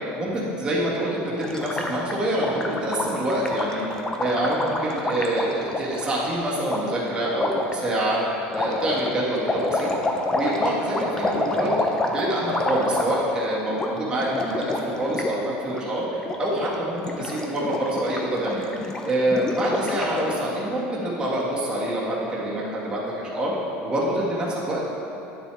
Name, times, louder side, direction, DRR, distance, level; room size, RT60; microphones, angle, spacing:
voice 1, 0.1-3.8 4.2-8.2 8.5-9.9 10.3-18.7 19.0-23.5 23.8-24.9, right 1 dB, 15° right, -6 dB, 1.9 m, -26 dB
Gurgling, 1.4-6.0 6.7-6.8 7.3-7.7 8.5-13.4 13.7-13.9 14.2-15.3 15.6-15.8 16.2-16.7 17.0-20.4, left 2 dB, 15° left, 0.6 m, -28 dB
10.5 x 6.9 x 3.4 m, 3.0 s
cardioid pair, 145°, 5 cm